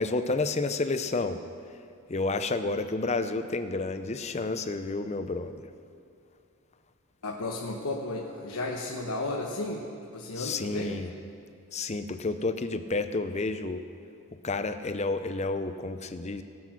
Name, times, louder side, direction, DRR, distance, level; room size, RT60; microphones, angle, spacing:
voice 1, 0.0-1.4 2.1-5.7 10.4-11.1 11.7-13.8 14.4-16.4, left 3 dB, 30° left, 10 dB, 0.5 m, -30 dB
voice 2, 7.2-9.8 10.1-11.0, left 2 dB, 80° left, -1 dB, 1.0 m, -33 dB
17.5 x 8.4 x 5.9 m, 2.4 s
head